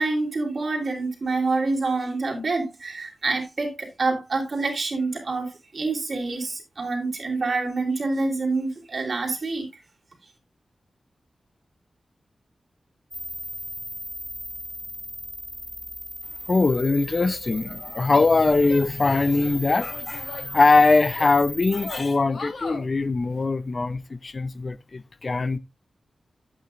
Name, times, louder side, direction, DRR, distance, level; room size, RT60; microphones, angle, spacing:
voice 1, 0.0-9.7, right 3 dB, 45° right, 3.4 m, -27 dB
sound 1, 13.1-22.0, equal, ahead, 1.8 m, -37 dB
voice 2, 16.5-25.6, left 3 dB, 35° left, 0.6 m, -21 dB
Female speech woman speaking / Yell, 18.1-19.4 19.9-21.4 21.8-22.9, left 4 dB, 65° left, 3.1 m, -38 dB
11.5 x 8.9 x 2.5 m
wide cardioid pair, 165°, 0 cm